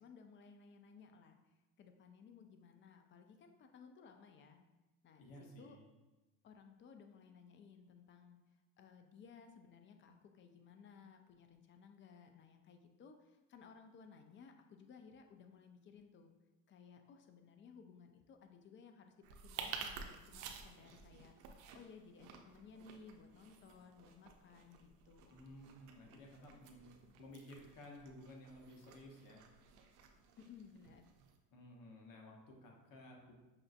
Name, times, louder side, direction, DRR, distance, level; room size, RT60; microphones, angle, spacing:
voice 1, 0.0-1.4 1.8-4.6 5.0-5.8 6.4-8.4 8.8-16.3 16.7-25.4 30.4-31.0, left 5 dB, 30° left, 6 dB, 0.4 m, -59 dB
voice 2, 5.2-5.8 25.3-29.4 31.5-33.3, left 1 dB, 55° left, 0 dB, 1.0 m, -55 dB
sound 1, 19.2-31.4, right 6 dB, 85° right, 0.6 m, -53 dB
5.5 x 2.5 x 2.4 m, 1.1 s
supercardioid pair, 95°, 39 cm